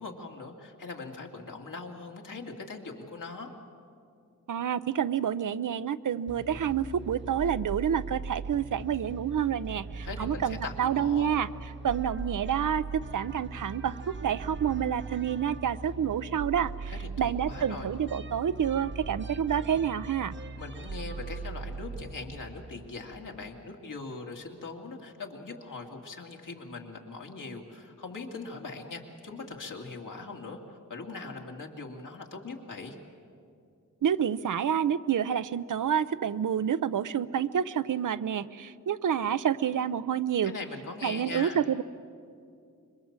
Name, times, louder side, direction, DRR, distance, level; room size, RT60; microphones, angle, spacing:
voice 1, 0.0-3.5 10.0-11.3 16.9-17.9 20.6-33.0 40.4-41.6, left 3 dB, 75° left, 1 dB, 2.5 m, -41 dB
voice 2, 4.5-11.5 11.8-16.9 17.2-20.3 34.0-40.5 41.0-41.8, right 8 dB, 75° right, 14 dB, 0.7 m, -28 dB
sound 1, 6.3-23.6, right 4 dB, 35° right, 0.8 m, -40 dB
26.0 x 22.5 x 7.4 m, 2.4 s
wide cardioid pair, 90°, 32 cm